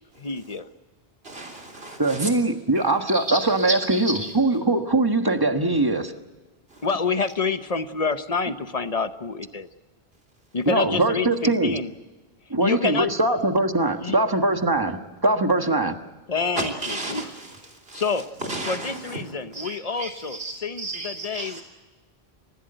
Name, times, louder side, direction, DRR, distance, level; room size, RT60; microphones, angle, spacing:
voice 1, 0.2-0.7 6.8-9.7 10.5-11.9 12.6-13.1 14.0-14.2 15.8-15.9 16.3-17.2 17.9-18.2 18.7-21.6, left 4 dB, 40° left, 10 dB, 1.0 m, -27 dB
voice 2, 1.2-2.3 3.1-4.3 6.7-6.8 16.6-17.5 17.9-18.0 18.4-19.2 19.5-21.6, right 2 dB, 70° right, 1 dB, 3.7 m, -32 dB
voice 3, 2.0-6.1 10.6-11.8 12.5-16.0, right 2 dB, 20° right, 6 dB, 1.4 m, -22 dB
29.0 x 15.5 x 7.9 m, 1.3 s
omnidirectional pair, 1.0 m